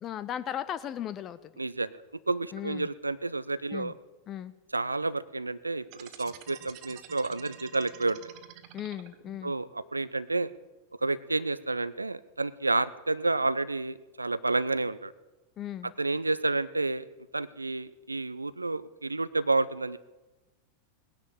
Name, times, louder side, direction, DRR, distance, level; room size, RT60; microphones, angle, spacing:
voice 1, 0.0-1.5 2.5-2.9 3.7-3.9 4.3-4.5 8.7-9.5 15.6-15.9, left 10 dB, 30° left, 15 dB, 0.6 m, -36 dB
voice 2, 1.6-1.9 2.3-3.9 4.7-8.2 9.4-10.5 11.0-15.1 16.0-17.1 17.3-20.0, right 3 dB, 80° right, 16 dB, 0.4 m, -30 dB
sound 1, 5.9-9.4, right 12 dB, 45° right, 1.2 m, -48 dB
18.5 x 10.5 x 7.2 m, 1.1 s
figure-of-eight pair, 90°, 0 cm